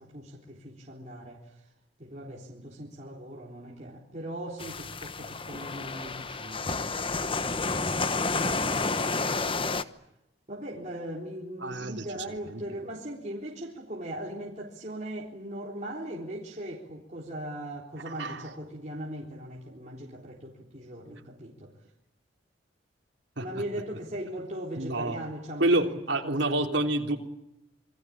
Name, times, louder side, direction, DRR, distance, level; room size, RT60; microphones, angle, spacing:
voice 1, 0.0-1.7 2.0-9.7 10.5-21.7 23.4-26.8, right 1 dB, 35° right, -2 dB, 3.8 m, -40 dB
sound 1, 4.6-9.8, left 3 dB, 25° left, 1.1 m, -30 dB
voice 2, 11.6-12.1 12.5-12.6 18.0-18.5 23.4-23.5 24.8-25.2 25.6-27.2, right 2 dB, 65° right, 2 dB, 3.5 m, -28 dB
27.5 x 23.5 x 8.7 m, 0.85 s
head